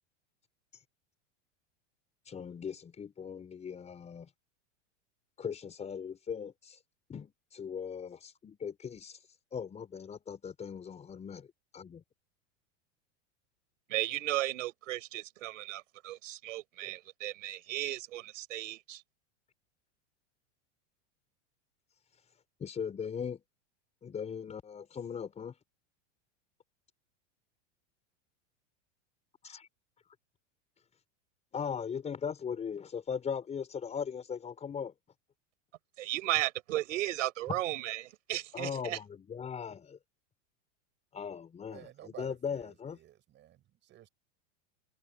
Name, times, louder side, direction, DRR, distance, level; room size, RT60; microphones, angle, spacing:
voice 1, 2.2-4.3 5.4-6.8 7.1-11.5 11.7-12.0 22.6-23.4 24.0-25.5 29.4-29.7 31.5-34.9 38.5-40.0 41.1-43.0, left 7 dB, 20° left, 5.1 m, -39 dB
voice 2, 13.9-19.0 36.0-39.0, right 15 dB, 85° right, 4.6 m, -35 dB
voice 3, 41.7-44.1, right 12 dB, 30° right, 5.8 m, -53 dB
supercardioid pair, 150°, 37 cm